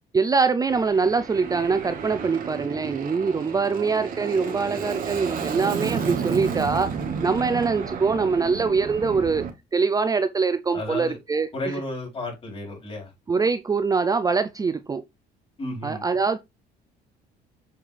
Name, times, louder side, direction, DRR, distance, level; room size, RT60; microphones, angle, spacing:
voice 1, 0.1-6.9 7.2-9.5 9.7-11.7 13.3-15.0 15.8-16.4, right 4 dB, 20° right, 0.5 m, -23 dB
Aircraft, 0.7-9.5, right 6 dB, 55° right, 1.6 m, -32 dB
voice 2, 10.7-11.2 11.5-13.1 15.6-16.0, left 1 dB, 35° left, 4.7 m, -33 dB
7.3 x 4.5 x 3.4 m
cardioid pair, 110°, 17 cm